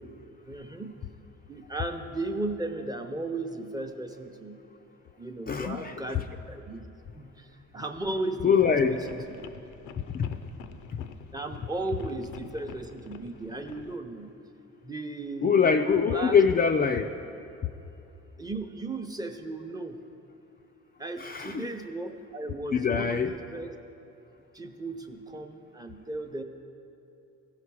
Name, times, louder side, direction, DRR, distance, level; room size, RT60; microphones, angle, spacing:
voice 1, 0.4-0.9 1.5-4.6 5.2-6.2 6.5-6.8 7.1-9.2 11.3-14.3 14.8-15.6 16.1-16.4 18.4-20.0 21.0-23.7 24.5-26.4, right 2 dB, 15° right, 5 dB, 0.7 m, -35 dB
sound 1, 4.1-4.2 6.0-6.2 6.6-7.1 7.5-14.0, left 6 dB, 90° left, 0.5 m, -48 dB
voice 2, 5.5-6.3 8.4-9.0 10.1-10.3 15.4-17.1 21.2-21.7 22.7-23.3, left 6 dB, 30° left, 4 dB, 0.4 m, -23 dB
15.5 x 5.7 x 4.8 m, 2.8 s
cardioid pair, 90°, 30 cm